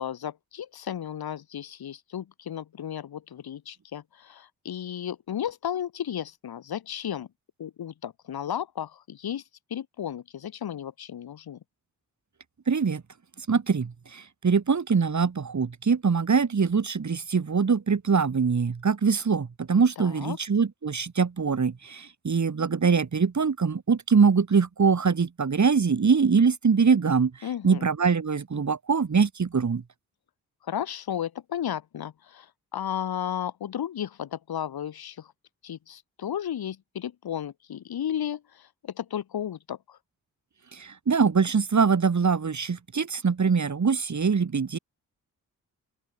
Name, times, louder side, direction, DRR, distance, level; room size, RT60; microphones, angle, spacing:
voice 1, 0.0-7.3 7.6-9.4 9.7-11.6 20.0-20.4 27.4-27.8 30.7-35.3 35.6-40.0, left 9 dB, 85° left, 6.5 m, -34 dB
voice 2, 12.7-13.0 13.5-27.3 27.6-29.8 40.8-44.8, right 5 dB, 50° right, 5.3 m, -23 dB
open air
cardioid pair, 60°, 36 cm